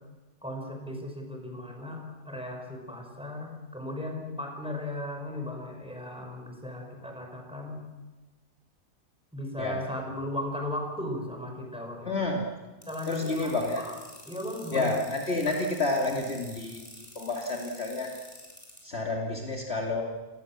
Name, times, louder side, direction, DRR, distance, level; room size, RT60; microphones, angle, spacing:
voice 1, 0.4-7.8 9.3-12.2 12.9-14.0 14.3-15.0, left 1 dB, 5° right, 2 dB, 5.4 m, -36 dB
voice 2, 12.1-12.4 13.1-13.8 14.7-18.1 18.8-20.0, left 2 dB, 40° left, 0 dB, 2.7 m, -30 dB
sound 1, 12.8-18.8, equal, 20° left, 6.9 m, -48 dB
29.5 x 19.5 x 7.4 m, 1.2 s
omnidirectional pair, 1.7 m